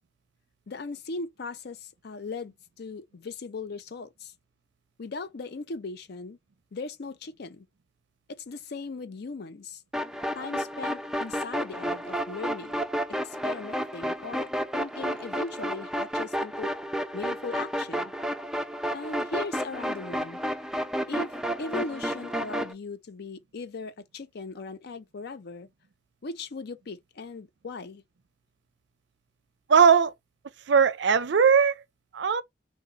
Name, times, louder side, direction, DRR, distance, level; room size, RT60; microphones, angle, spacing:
voice 1, 0.7-4.3 5.0-6.4 6.7-7.7 8.3-9.8 10.3-12.8 13.2-14.5 14.7-16.7 17.1-18.1 18.9-20.4 21.1-25.7 26.2-28.0, left 3 dB, 60° left, 0.5 m, -38 dB
sound 1, 9.9-22.7, equal, 5° right, 0.4 m, -31 dB
voice 2, 29.7-30.1 30.7-31.7 32.1-32.4, right 6 dB, 65° right, 0.5 m, -19 dB
3.9 x 2.3 x 3.9 m
head